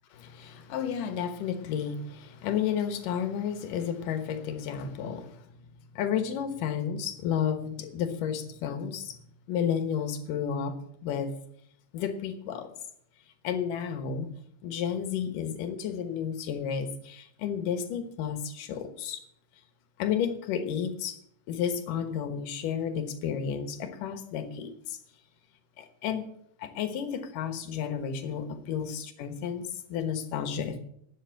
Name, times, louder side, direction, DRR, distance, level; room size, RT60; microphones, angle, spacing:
voice 1, 0.2-5.4 5.9-9.2 9.5-11.3 11.9-12.7 13.4-14.3 14.6-19.2 20.0-21.2 21.5-25.0 25.8-26.3 26.6-30.8, left 8 dB, 75° left, 2.8 m, -32 dB
11.0 x 7.9 x 8.1 m
omnidirectional pair, 3.8 m